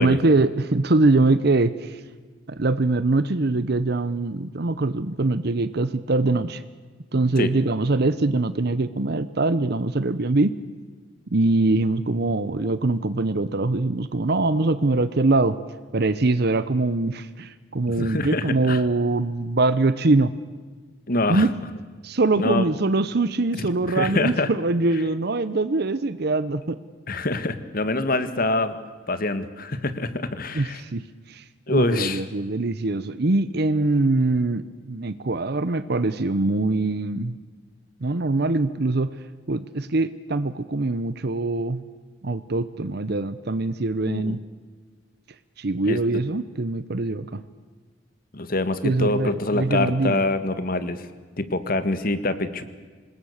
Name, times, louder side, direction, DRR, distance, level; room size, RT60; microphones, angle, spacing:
voice 1, 0.0-2.0 2.5-6.6 7.1-10.5 11.3-15.6 15.9-20.3 21.3-21.5 22.0-26.8 30.5-37.4 38.0-39.1 39.5-41.8 42.2-44.4 45.6-47.4 48.8-50.2, right 2 dB, 60° right, 14 dB, 0.8 m, -23 dB
voice 2, 18.0-18.8 21.1-21.5 22.4-22.7 23.5-24.5 27.1-28.8 29.1-30.8 31.7-32.2 44.1-44.4 45.8-46.0 48.3-51.1 51.4-52.6, left 2 dB, 50° left, 12 dB, 1.6 m, -25 dB
26.0 x 20.5 x 6.6 m, 1.5 s
head